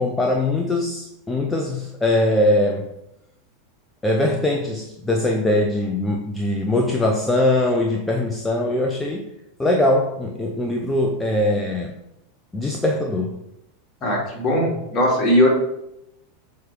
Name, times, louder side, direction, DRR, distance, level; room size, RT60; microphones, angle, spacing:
voice 1, 0.0-2.9 4.0-9.3 9.6-11.9 12.5-13.4, left 1 dB, 10° left, 1 dB, 0.8 m, -21 dB
voice 2, 14.0-15.5, left 1 dB, 35° left, -1 dB, 2.6 m, -19 dB
7.6 x 3.5 x 5.0 m, 0.82 s
figure-of-eight pair, 85°, 0 cm